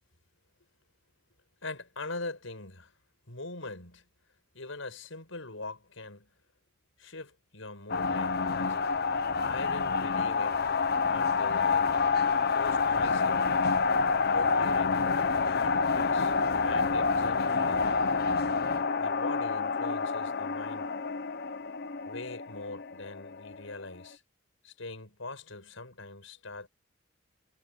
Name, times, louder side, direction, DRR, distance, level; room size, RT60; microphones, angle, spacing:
voice 1, 1.6-2.9 3.3-4.1 4.5-6.3 7.0-9.0 9.5-10.6 11.1-11.9 12.5-13.5 14.3-16.3 16.6-18.0 19.0-20.9 22.0-24.2 24.6-26.7, left 3 dB, 85° left, 6.1 m, -42 dB
sound 1, 7.9-23.7, left 4 dB, 50° left, 0.8 m, -28 dB
head